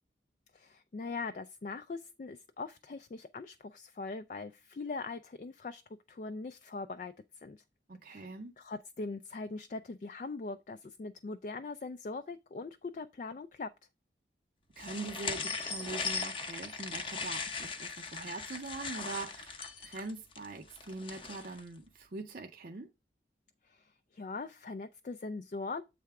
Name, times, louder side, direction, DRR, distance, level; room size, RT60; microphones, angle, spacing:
voice 1, 0.5-5.8 6.1-7.1 7.4-7.6 8.0-8.3 8.6-13.7 23.6-25.8, left 3 dB, 45° left, 0.3 m, -41 dB
voice 2, 7.9-8.5 14.8-22.9, right 3 dB, 50° right, 0.6 m, -43 dB
sound 1, 14.8-21.6, left 4 dB, 30° left, 0.7 m, -39 dB
7.5 x 3.4 x 4.7 m
head